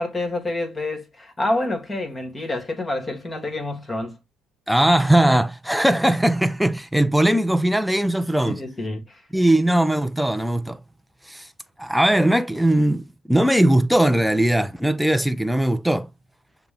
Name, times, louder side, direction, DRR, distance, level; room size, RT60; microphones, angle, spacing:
voice 1, 0.0-4.2 8.5-9.2, left 2 dB, 25° left, 1.7 m, -27 dB
voice 2, 4.7-8.6 9.3-10.8 11.3-11.5 11.8-16.1, right 1 dB, ahead, 0.5 m, -19 dB
6.5 x 2.2 x 3.6 m
hypercardioid pair, 65°, 0 cm